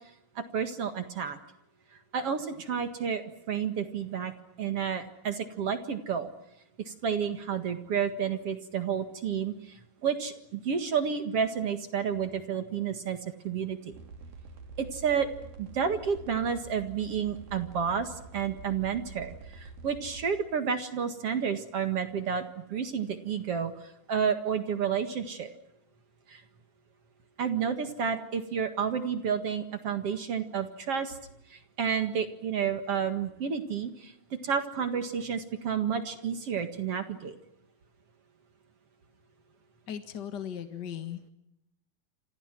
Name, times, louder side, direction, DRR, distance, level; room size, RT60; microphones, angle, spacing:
voice 1, 0.4-1.4 2.1-4.3 4.6-6.3 6.9-13.9 14.8-15.3 15.6-25.5 26.3-26.4 27.4-31.2 31.5-37.3, right 7 dB, 50° right, 8 dB, 2.4 m, -31 dB
sound 1, 13.9-20.3, right 3 dB, 70° right, 4.4 m, -47 dB
voice 2, 39.9-41.3, left 9 dB, 45° left, 8 dB, 1.4 m, -38 dB
29.0 x 28.0 x 6.1 m, 0.82 s
omnidirectional pair, 4.1 m